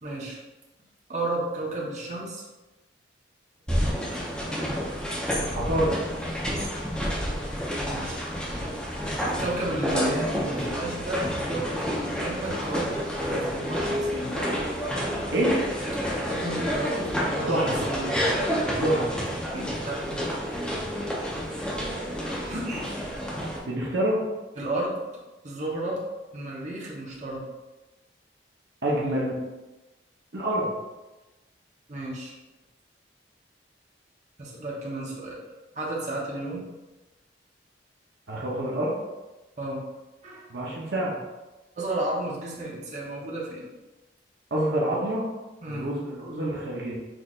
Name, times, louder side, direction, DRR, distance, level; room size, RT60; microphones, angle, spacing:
voice 1, 0.0-0.4 1.1-2.4 7.8-8.2 9.2-14.3 16.3-18.2 18.4-18.6 19.5-20.0 22.5-22.9 24.6-25.0 25.4-26.0 26.3-27.4 31.9-32.3 34.4-35.4 35.7-36.6 39.6-39.8 40.2-40.5 41.7-43.7 45.6-45.9, right 1 dB, 40° right, -4 dB, 1.0 m, -32 dB
sound 1, 3.7-23.6, equal, 5° left, 0.8 m, -29 dB
voice 2, 5.5-6.0 15.3-15.6 17.4-17.8 18.8-19.1 20.1-20.2 23.6-24.2 28.8-29.4 30.3-30.6 38.3-38.9 40.5-41.2 44.5-45.2 45.7-47.0, right 1 dB, 65° right, -4 dB, 0.9 m, -26 dB
6.2 x 3.3 x 2.5 m, 1.1 s
head